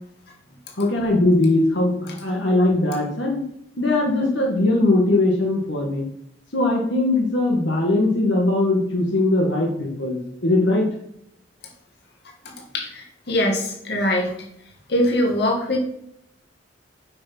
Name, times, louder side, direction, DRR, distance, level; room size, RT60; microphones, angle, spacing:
voice 1, 0.8-3.4 3.8-6.0 6.5-10.9, left 2 dB, 80° left, -1 dB, 1.9 m, -20 dB
voice 2, 12.4-14.3 14.9-15.8, left 1 dB, 60° left, 0 dB, 2.2 m, -22 dB
8.0 x 5.9 x 6.1 m, 0.74 s
head